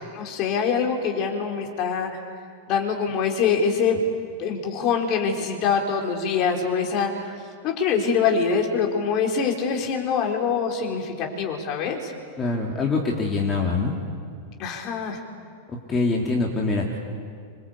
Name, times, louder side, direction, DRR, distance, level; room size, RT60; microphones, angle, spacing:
voice 1, 0.1-2.1 2.7-4.1 4.4-7.3 7.6-12.1 14.6-15.2, left 6 dB, 40° left, 2 dB, 4.6 m, -24 dB
voice 2, 12.4-13.9 15.7-17.0, left 3 dB, 20° left, -1 dB, 3.3 m, -24 dB
27.0 x 23.0 x 8.5 m, 2.1 s
figure-of-eight pair, 90°, 0 cm